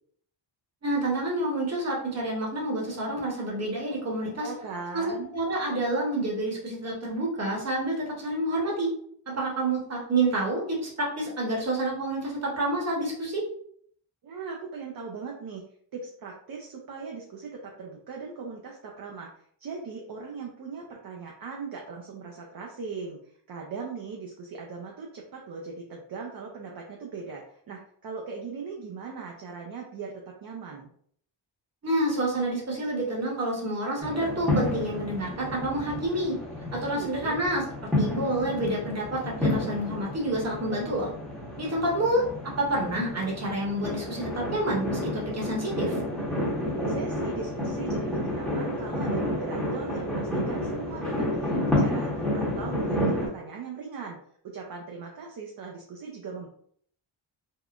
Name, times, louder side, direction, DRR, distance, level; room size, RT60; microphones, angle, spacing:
voice 1, 0.8-4.5 4.9-5.0 5.3-8.9 9.3-13.4 31.8-36.4 36.7-37.6 38.0-41.1 41.6-46.0, right 1 dB, 35° right, -2 dB, 1.0 m, -28 dB
voice 2, 4.4-5.4 14.2-15.6 15.9-19.3 19.6-23.2 23.5-30.9 36.9-37.4 46.7-54.2 54.4-56.5, right 5 dB, 50° right, 0 dB, 0.5 m, -39 dB
sound 1, 34.0-53.3, left 1 dB, ahead, 0.9 m, -30 dB
3.6 x 2.1 x 2.4 m, 0.62 s
wide cardioid pair, 125°, 47 cm